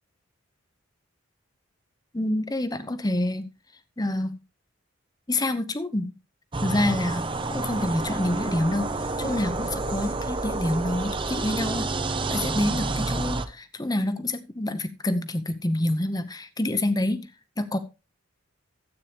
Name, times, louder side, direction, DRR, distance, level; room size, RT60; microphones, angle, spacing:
voice 1, 2.1-3.5 4.0-4.4 5.3-6.1 6.6-11.9 12.3-17.3 17.6-17.8, left 1 dB, 20° left, 12 dB, 0.8 m, -27 dB
sound 1, 6.5-13.5, right 3 dB, 25° right, 0.6 m, -29 dB
13.0 x 8.4 x 3.3 m, 0.28 s
head